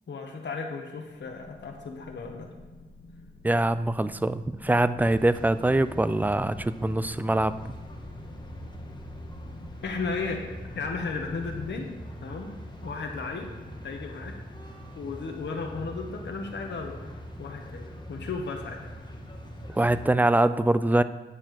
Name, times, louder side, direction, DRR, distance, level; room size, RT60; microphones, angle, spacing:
voice 1, 0.1-2.5 9.8-10.4 10.7-13.5 13.8-14.3 14.9-17.0 17.4-18.9, left 4 dB, 65° left, 2 dB, 1.3 m, -35 dB
sound 1, 0.9-11.7, left 2 dB, 90° left, 1.2 m, -49 dB
voice 2, 3.4-7.6 19.7-21.0, right 2 dB, 10° right, 14 dB, 0.3 m, -23 dB
sound 2, 5.0-20.1, equal, 20° left, 1.5 m, -42 dB
9.6 x 4.3 x 7.6 m, 1.4 s
wide cardioid pair, 115°, 20 cm